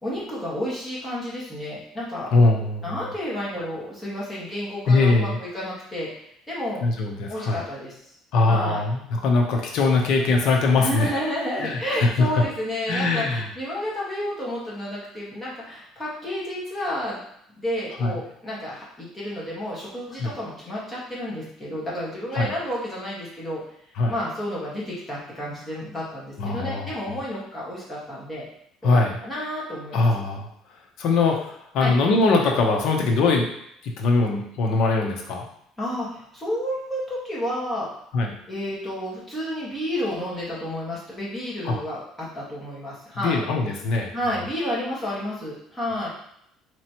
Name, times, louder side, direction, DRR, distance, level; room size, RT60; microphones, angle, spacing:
voice 1, 0.0-2.3 2.8-6.1 6.5-6.8 7.3-7.9 8.5-8.8 10.8-17.2 17.5-23.6 24.1-28.4 28.9-30.0 31.8-31.9 35.8-37.9 38.5-43.4 44.1-46.1, equal, 10° left, -7 dB, 1.6 m, -31 dB
voice 2, 2.3-3.0 4.9-5.4 6.8-7.6 8.3-11.2 11.6-12.4 12.9-13.4 18.0-18.1 20.2-20.3 22.3-22.5 24.0-24.1 26.4-27.0 28.8-29.2 29.9-30.5 31.0-33.5 33.8-35.5 38.1-38.3 41.6-41.8 43.2-44.1, left 3 dB, 60° left, 1 dB, 0.8 m, -21 dB
4.1 x 3.0 x 3.0 m, 0.73 s
cardioid pair, 140°, 0 cm